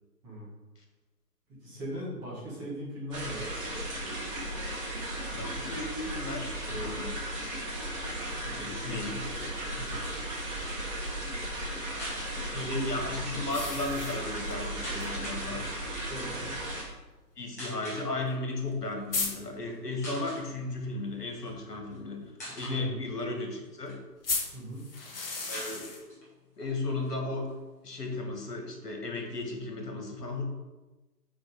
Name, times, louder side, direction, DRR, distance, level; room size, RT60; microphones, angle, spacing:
voice 1, 0.2-0.5 1.5-3.5 9.8-10.0 12.3-12.9 15.9-16.5 22.7-23.0 24.5-24.8, right 1 dB, 10° right, -9 dB, 1.1 m, -39 dB
sound 1, 3.1-16.8, right 1 dB, 25° right, 2.5 m, -36 dB
voice 2, 5.3-7.2 8.4-9.3 12.5-15.7 17.4-24.0 25.5-26.1 26.6-27.5 27.8-30.4, left 2 dB, 70° left, 2 dB, 1.8 m, -35 dB
sound 2, 8.9-11.0 13.5-14.6 15.0-15.1 15.5-15.6 16.5-16.6 18.3-18.4 18.7-18.8 19.1-19.3 24.2-26.0, left 3 dB, 35° left, 1.3 m, -35 dB
sound 3, 11.9-12.3 13.4-13.7 14.8-15.4 16.4-16.6 17.6-18.1 19.1-19.3 19.7-19.8 20.0-20.5 21.3-22.0 22.4-22.8 23.4-24.4 24.8-24.9 25.0-25.1 25.5-26.3 26.6-26.7 27.0-28.1, equal, 10° left, 0.8 m, -43 dB
6.6 x 4.6 x 4.7 m, 1.1 s
figure-of-eight pair, 140°, 49 cm